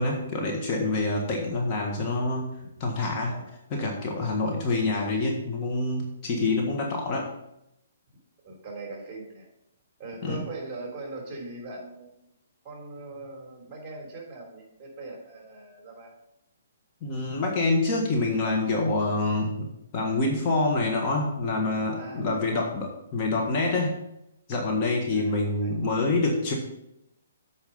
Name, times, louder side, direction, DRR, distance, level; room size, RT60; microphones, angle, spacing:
voice 1, 0.0-2.5 2.8-3.3 3.7-7.3 10.2-10.4 17.0-19.7 19.9-23.9 24.5-26.5, left 2 dB, 30° left, -1 dB, 1.6 m, -26 dB
voice 2, 3.2-3.5 4.5-4.7 8.4-9.5 10.0-12.2 12.6-16.1 22.0-22.7 25.0-25.7, right 2 dB, 20° right, -1 dB, 3.1 m, -41 dB
8.4 x 5.1 x 5.5 m, 0.82 s
hypercardioid pair, 140°, 0 cm